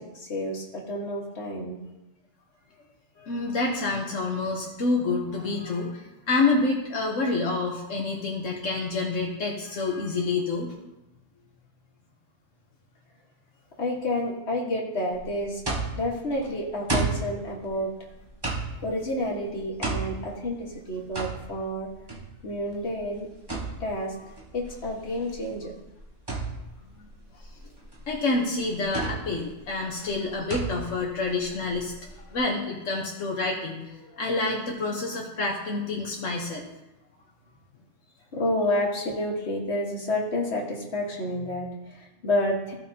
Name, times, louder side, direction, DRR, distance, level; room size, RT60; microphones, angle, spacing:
voice 1, 0.0-1.8 13.8-15.6 15.9-17.9 18.8-21.9 22.4-23.3 23.8-24.1 24.5-25.7 34.0-34.1 38.3-42.7, left 1 dB, 60° left, -2 dB, 1.9 m, -29 dB
voice 2, 3.2-10.7 27.0-27.1 28.1-33.8 34.1-36.6, left 3 dB, 80° left, -2 dB, 1.4 m, -28 dB
sound 1, 15.1-32.4, right 3 dB, 20° right, 1.6 m, -34 dB
15.5 x 5.5 x 2.8 m, 0.99 s
omnidirectional pair, 1.3 m